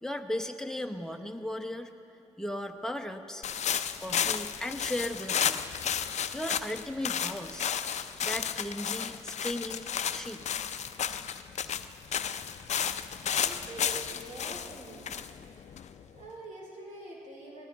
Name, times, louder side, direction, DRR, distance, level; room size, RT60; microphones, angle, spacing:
voice 1, 0.0-1.9 2.4-3.5 4.0-5.7 6.3-7.7 8.2-10.4, left 1 dB, 5° left, 5 dB, 1.0 m, -36 dB
sound 1, 3.4-16.2, left 8 dB, 60° left, 0.5 m, -33 dB
voice 2, 13.4-15.3 16.1-17.7, right 1 dB, 70° right, -3 dB, 4.0 m, -45 dB
20.5 x 13.5 x 3.7 m, 2.9 s
supercardioid pair, 50°, 13 cm